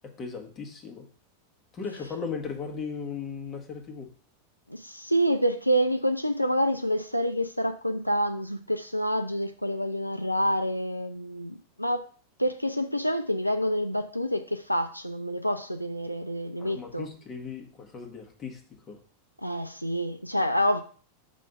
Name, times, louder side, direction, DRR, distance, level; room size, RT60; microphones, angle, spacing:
voice 1, 0.0-1.1 1.7-4.1 16.6-19.0, left 5 dB, 25° left, 1.4 m, -37 dB
voice 2, 4.7-12.1 12.4-17.1 19.4-20.8, equal, 90° left, 0.4 m, -27 dB
6.3 x 3.3 x 5.4 m
figure-of-eight pair, 90°, 0 cm